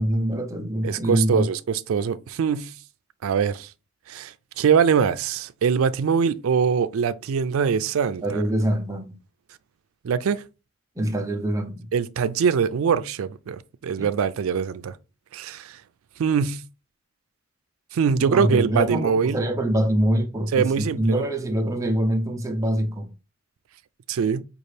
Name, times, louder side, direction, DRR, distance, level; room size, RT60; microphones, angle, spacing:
voice 1, 0.0-1.5 8.2-9.2 11.0-11.9 14.0-14.1 18.2-23.1, right 1 dB, 15° right, 0.6 m, -24 dB
voice 2, 0.8-2.7 3.2-3.7 4.1-8.4 10.0-10.4 11.9-14.9 15.3-15.8 16.2-16.6 17.9-19.4 20.5-21.2 24.1-24.4, right 6 dB, 85° right, 0.4 m, -23 dB
5.3 x 2.4 x 3.2 m
head